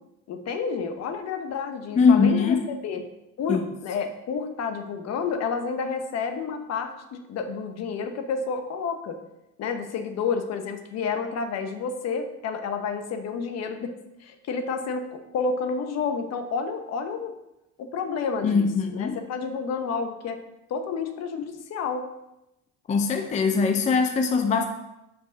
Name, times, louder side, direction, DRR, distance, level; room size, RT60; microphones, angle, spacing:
voice 1, 0.3-3.0 3.4-9.2 9.6-13.9 14.2-17.3 17.8-20.4 20.7-22.0, left 5 dB, 50° left, 6 dB, 1.0 m, -30 dB
voice 2, 2.0-2.7 3.5-3.6 18.4-19.2 22.9-24.7, left 5 dB, 20° left, 5 dB, 0.5 m, -21 dB
5.3 x 5.0 x 6.4 m, 0.92 s
cardioid pair, 110°, 32 cm